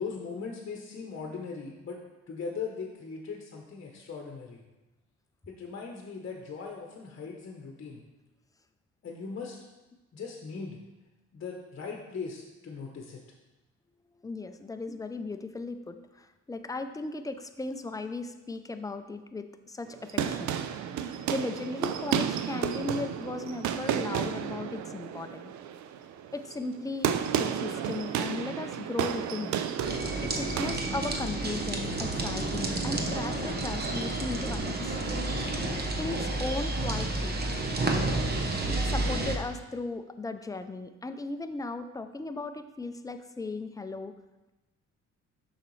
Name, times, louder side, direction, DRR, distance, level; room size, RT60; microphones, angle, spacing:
voice 1, 0.0-4.6 5.5-8.0 9.0-9.6 10.1-10.8 11.3-13.2, left 5 dB, 40° left, 1 dB, 0.9 m, -39 dB
voice 2, 14.2-20.6 21.3-25.5 26.3-27.1 27.4-29.5 30.2-35.0 36.0-37.4 38.7-44.1, left 3 dB, 10° left, 8 dB, 0.4 m, -36 dB
sound 1, 19.9-30.8, right 9 dB, 70° right, 0.5 m, -32 dB
sound 2, 29.8-39.4, right 2 dB, 35° right, 0.9 m, -30 dB
6.6 x 5.8 x 3.1 m, 1.1 s
cardioid pair, 90°, 30 cm